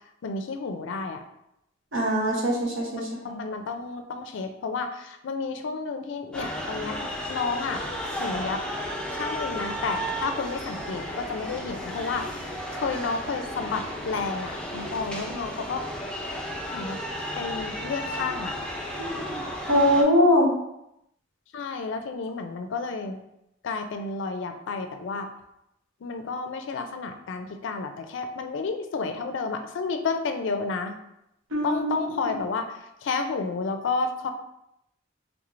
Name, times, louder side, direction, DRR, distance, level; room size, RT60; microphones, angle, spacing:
voice 1, 0.2-1.2 2.9-7.0 7.3-7.9 8.2-8.6 9.1-15.8 16.7-17.0 17.4-18.6 21.5-23.2 23.6-25.3 26.0-30.9 31.6-34.3, left 4 dB, 70° left, 7 dB, 0.4 m, -31 dB
voice 2, 1.9-3.4 19.0-19.4 19.7-20.5 31.5-31.9, equal, 80° right, -2 dB, 0.9 m, -22 dB
sound 1, 6.3-20.0, equal, 5° left, 0.5 m, -33 dB
3.4 x 3.0 x 2.5 m, 0.82 s
head